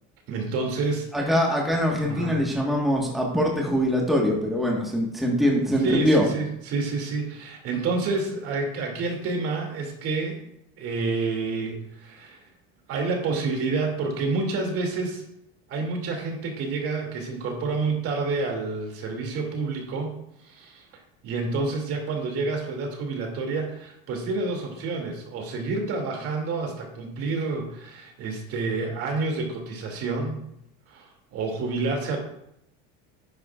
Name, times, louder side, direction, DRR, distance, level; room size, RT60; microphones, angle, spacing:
voice 1, 0.3-1.1 2.0-2.4 5.4-10.4 10.8-12.4 12.9-15.2 15.7-20.1 20.4-20.9 21.2-30.4 30.9-32.2, right 3 dB, 50° right, 2 dB, 2.6 m, -29 dB
voice 2, 1.1-6.3, equal, ahead, -2 dB, 1.5 m, -23 dB
11.0 x 9.5 x 2.5 m, 0.77 s
cardioid pair, 135°, 29 cm